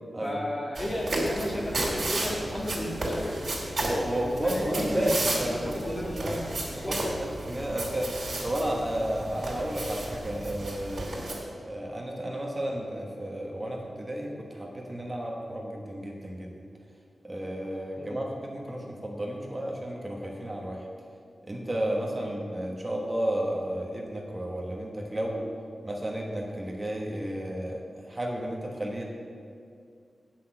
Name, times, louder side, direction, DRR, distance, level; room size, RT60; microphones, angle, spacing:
voice 1, 0.2-3.5 4.1-5.1 5.4-7.0 18.0-18.2 22.2-22.3, left 1 dB, 30° left, -2 dB, 1.8 m, -34 dB
sound 1, 0.8-11.4, right 1 dB, 55° right, 2.6 m, -33 dB
voice 2, 3.8-6.3 6.9-11.2 11.6-16.5 17.2-20.9 21.4-25.5 25.8-29.0, right 1 dB, 25° right, -1 dB, 1.2 m, -32 dB
8.2 x 5.9 x 7.7 m, 2.3 s
wide cardioid pair, 100°, 0 cm